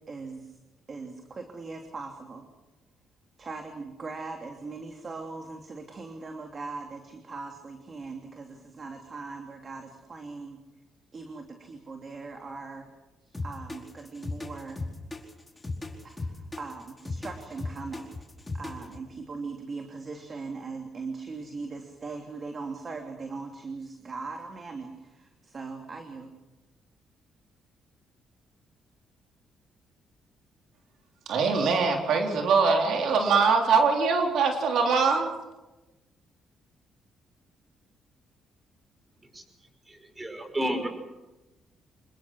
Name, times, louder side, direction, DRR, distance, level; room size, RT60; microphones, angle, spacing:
voice 1, 0.1-0.6 0.9-2.4 3.4-10.6 11.1-12.9 13.2-14.8 16.0-18.2 18.5-26.3, right 4 dB, 40° right, 4 dB, 3.0 m, -40 dB
sound 1, 13.3-19.0, left 3 dB, 15° left, 4.7 m, -36 dB
voice 2, 31.3-35.3, right 4 dB, 75° right, 2 dB, 3.8 m, -23 dB
voice 3, 39.9-40.9, equal, 20° right, 6 dB, 5.7 m, -31 dB
27.0 x 21.5 x 6.3 m, 1.1 s
cardioid pair, 90°, 0 cm